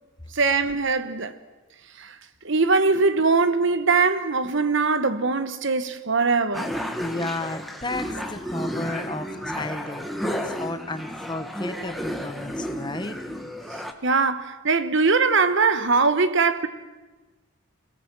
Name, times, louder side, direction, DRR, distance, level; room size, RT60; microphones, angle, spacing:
voice 1, 0.3-1.3 2.0-2.1 2.4-6.7 14.0-16.7, right 4 dB, 55° right, 1.1 m, -21 dB
sound 1, 6.5-13.9, equal, ahead, 1.4 m, -32 dB
voice 2, 7.0-13.2, left 2 dB, 20° left, 1.2 m, -33 dB
25.5 x 17.5 x 7.5 m
head